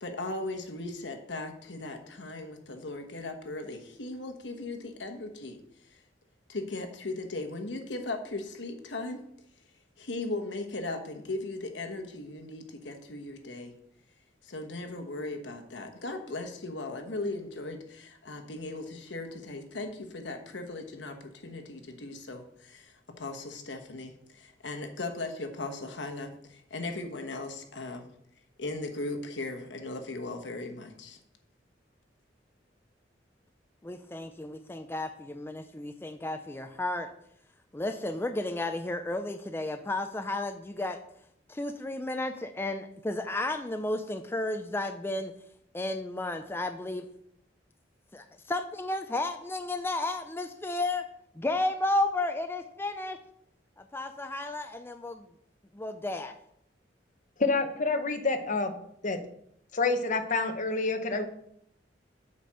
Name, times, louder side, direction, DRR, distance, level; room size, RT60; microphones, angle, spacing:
voice 1, 0.0-5.6 5.9-6.0 6.5-9.2 10.0-13.7 14.4-28.1 28.6-31.2, left 2 dB, 75° left, 5 dB, 1.2 m, -38 dB
voice 2, 33.8-37.1 37.7-41.0 41.5-45.3 45.7-47.1 48.1-51.0 51.4-53.2 53.8-55.3 55.7-56.3, left 2 dB, 15° left, 7 dB, 0.4 m, -32 dB
voice 3, 57.4-58.7 59.0-59.2 59.7-61.3, left 3 dB, 45° left, 6 dB, 0.9 m, -28 dB
8.1 x 4.4 x 6.3 m, 0.72 s
head